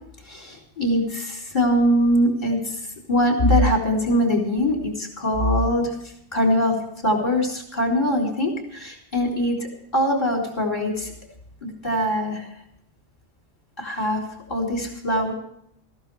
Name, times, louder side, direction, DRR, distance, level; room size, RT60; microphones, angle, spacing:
voice 1, 0.3-2.7 3.1-5.9 6.3-6.7 7.0-11.1 11.6-12.5 13.8-14.2 14.5-15.3, equal, 45° left, -1 dB, 3.8 m, -22 dB
20.0 x 15.5 x 3.4 m, 0.72 s
omnidirectional pair, 1.2 m